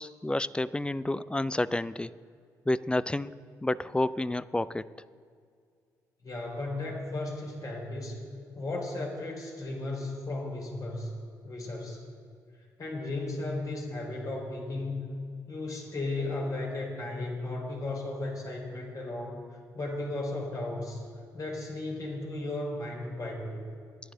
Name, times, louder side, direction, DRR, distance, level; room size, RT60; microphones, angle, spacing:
voice 1, 0.0-2.1 2.7-3.3 3.6-4.9, left 1 dB, 10° left, 17 dB, 0.5 m, -29 dB
voice 2, 6.2-8.2 8.5-11.1 11.4-12.0 12.8-15.1 15.5-19.4 19.7-21.0 21.3-23.6, left 2 dB, 45° left, -1 dB, 4.6 m, -35 dB
27.0 x 11.0 x 3.8 m, 2.2 s
hypercardioid pair, 50°, 8 cm